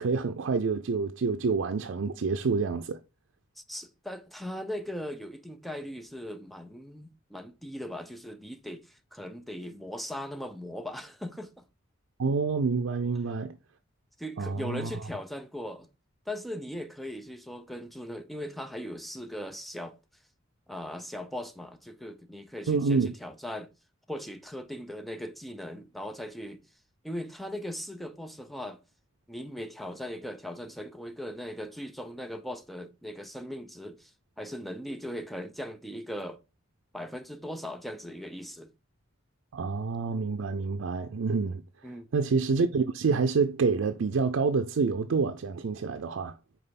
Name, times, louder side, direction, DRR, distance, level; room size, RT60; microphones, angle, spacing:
voice 1, 0.0-3.0 12.2-13.6 14.4-14.9 22.7-23.1 39.5-41.6 42.1-46.3, right 4 dB, 90° right, 0.5 m, -27 dB
voice 2, 3.6-11.6 14.2-15.9 16.3-19.9 20.7-23.7 24.1-26.6 27.0-28.8 29.3-34.1 34.4-36.4 36.9-38.7 41.8-42.1, equal, ahead, 0.6 m, -39 dB
5.4 x 4.4 x 4.0 m
head